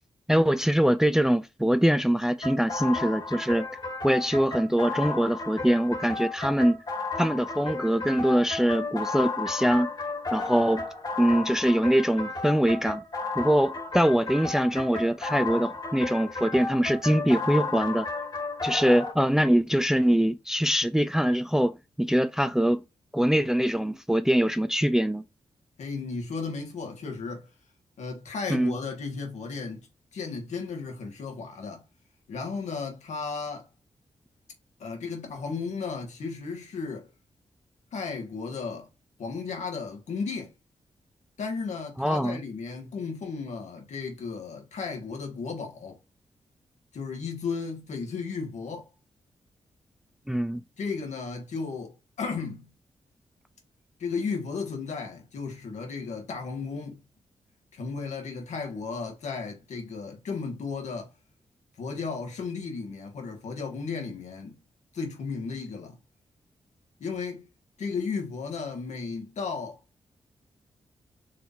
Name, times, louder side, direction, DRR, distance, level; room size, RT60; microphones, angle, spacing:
voice 1, 0.3-3.7 4.0-6.8 7.2-9.9 10.3-10.8 11.2-13.0 13.4-18.1 18.6-22.8 23.1-25.2 28.5-28.7 42.0-42.4 50.3-50.6, equal, 5° right, 0.4 m, -23 dB
sound 1, 2.4-19.1, left 3 dB, 35° left, 1.7 m, -33 dB
voice 2, 25.8-27.5 28.0-31.8 32.3-33.7 34.8-37.1 37.9-38.9 39.2-40.5 41.4-46.0 46.9-48.9 50.8-52.7 54.0-57.0 57.7-61.1 61.8-64.6 64.9-66.0 67.0-67.5 67.8-69.8, left 4 dB, 80° left, 1.6 m, -34 dB
4.8 x 3.5 x 2.6 m
cardioid pair, 55°, 12 cm